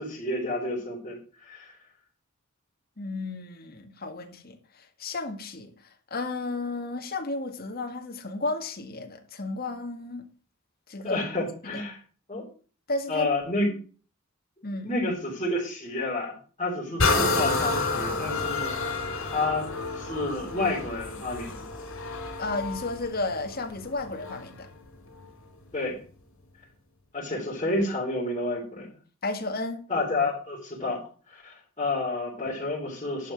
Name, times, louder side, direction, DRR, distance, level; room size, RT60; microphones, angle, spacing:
voice 1, 0.0-1.7 11.0-12.0 12.3-12.4 13.1-13.7 14.8-19.7 19.9-21.6 25.7-26.0 27.1-28.9 29.9-33.3, left 2 dB, 30° left, 4.1 m, -30 dB
voice 2, 3.0-5.7 6.1-10.2 10.9-11.2 11.6-11.8 12.9-13.3 14.6-14.9 22.4-24.7 29.2-29.8, left 2 dB, 45° left, 1.9 m, -33 dB
sound 1, 17.0-24.6 25.2-25.3, left 3 dB, 80° left, 4.2 m, -29 dB
11.5 x 5.9 x 7.5 m
head